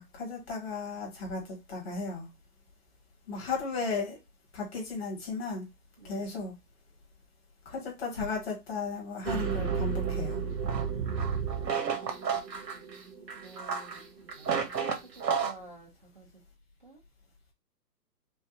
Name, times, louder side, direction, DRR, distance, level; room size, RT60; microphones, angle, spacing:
voice 1, 0.0-2.3 3.3-4.2 4.5-5.7 6.0-6.5 7.7-10.4, left 4 dB, 40° left, 2.0 m, -35 dB
voice 2, 6.0-6.4 13.3-16.3 16.8-17.0, right 2 dB, 30° right, 0.6 m, -52 dB
sound 1, 9.2-15.5, right 6 dB, 80° right, 1.5 m, -31 dB
5.3 x 2.5 x 2.4 m
hypercardioid pair, 170°, 49 cm